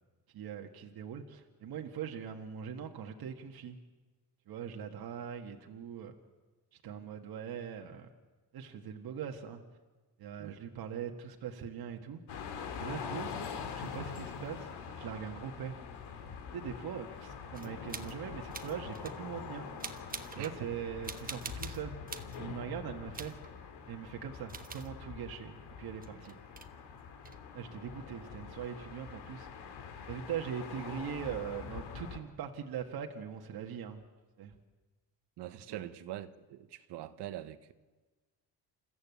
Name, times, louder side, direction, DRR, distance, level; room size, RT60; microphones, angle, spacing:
voice 1, 0.3-3.8 4.5-6.1 6.8-8.1 8.5-9.6 10.2-12.2 12.8-13.3 13.8-15.8 16.5-19.7 20.4-23.3 23.9-26.4 27.5-29.5 30.1-34.0 34.4-34.5, right 8 dB, 65° right, 3 dB, 1.8 m, -41 dB
sound 1, 12.3-32.2, left 6 dB, 85° left, 2.4 m, -44 dB
sound 2, 17.5-18.2 18.5-19.2 19.8-20.6 21.0-22.4 23.1-23.5 24.5-24.9 26.0-26.7 27.2-27.4, right 4 dB, 20° right, 1.3 m, -45 dB
voice 2, 35.4-37.7, right 13 dB, 85° right, 11 dB, 1.3 m, -43 dB
28.5 x 14.5 x 8.4 m, 1.3 s
cardioid pair, 125°, 40 cm